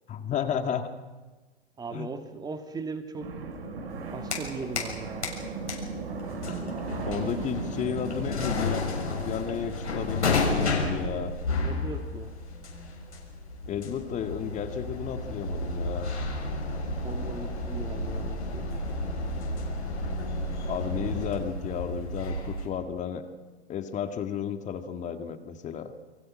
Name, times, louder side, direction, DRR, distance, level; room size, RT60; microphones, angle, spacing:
voice 1, 0.1-0.9 1.9-2.1 7.1-8.9 9.2-11.3 13.7-16.1 20.6-23.3 23.7-25.9, left 8 dB, 20° left, 7 dB, 2.0 m, -33 dB
voice 2, 1.8-3.3 4.1-5.3 7.2-7.6 11.6-12.3 17.0-18.8, right 4 dB, 10° right, 7 dB, 2.3 m, -39 dB
sound 1, 3.2-10.6, right 4 dB, 65° right, 6.2 m, -37 dB
sound 2, 3.9-5.0 5.2-22.7, left 2 dB, 85° left, 6.8 m, -32 dB
29.5 x 23.5 x 6.3 m, 1.2 s
hypercardioid pair, 120°, 33 cm